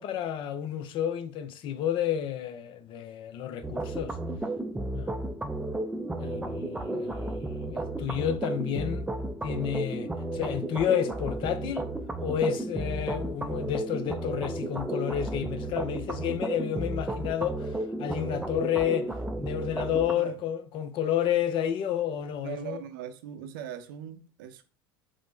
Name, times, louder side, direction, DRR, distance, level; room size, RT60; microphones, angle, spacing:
voice 1, 0.0-4.2 4.9-5.1 6.2-9.1 9.4-11.9 12.2-17.7 18.0-19.1 19.4-22.8, left 10 dB, 45° left, 0.5 m, -30 dB
sound 1, 3.6-20.1, right 2 dB, 10° right, 0.4 m, -33 dB
voice 2, 22.4-24.6, right 10 dB, 65° right, 0.5 m, -40 dB
4.9 x 2.0 x 3.7 m
hypercardioid pair, 75°, 12 cm